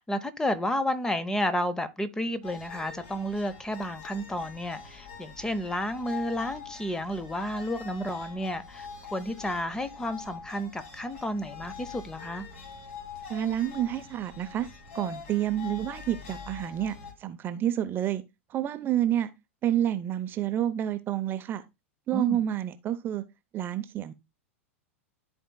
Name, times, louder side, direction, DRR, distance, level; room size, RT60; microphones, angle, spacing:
voice 1, 0.0-12.5 22.1-22.4, left 1 dB, 10° left, 0.7 m, -31 dB
sound 1, 2.4-17.1, left 5 dB, 55° left, 3.1 m, -44 dB
voice 2, 13.3-14.7 14.9-18.2 18.5-19.3 19.6-21.6 22.1-23.2 23.5-24.1, right 11 dB, 30° right, 0.6 m, -29 dB
13.5 x 4.5 x 2.2 m
figure-of-eight pair, 90°, 7 cm